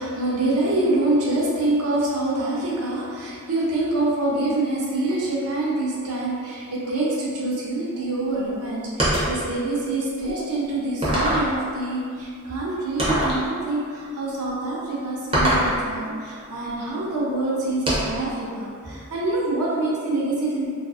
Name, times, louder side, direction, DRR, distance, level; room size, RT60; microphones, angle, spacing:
voice 1, 0.0-20.7, right 2 dB, 85° right, -5 dB, 0.6 m, -25 dB
sound 1, 9.0-9.4 10.2-10.3 11.0-11.6 13.0-13.4 15.3-15.8 17.9-18.3, equal, 25° right, 0.5 m, -22 dB
2.5 x 2.4 x 2.4 m, 2.2 s
head